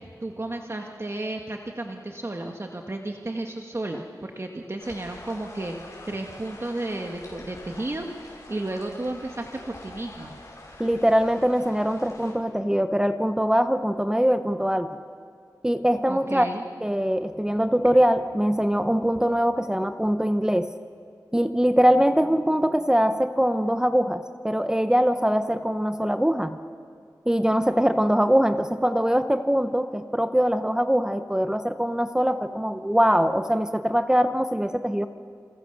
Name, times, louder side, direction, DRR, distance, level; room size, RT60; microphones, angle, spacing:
voice 1, 0.2-5.8 6.1-10.3 16.1-16.6, right 2 dB, 35° right, 2 dB, 1.7 m, -33 dB
sound 1, 4.8-12.3, left 2 dB, 45° left, 7.1 m, -45 dB
voice 2, 10.8-14.9 15.6-16.5 16.8-20.7 21.3-26.6 27.3-35.1, equal, 10° right, 9 dB, 0.9 m, -22 dB
28.5 x 27.5 x 6.8 m, 2.2 s
wide cardioid pair, 75°, 7 cm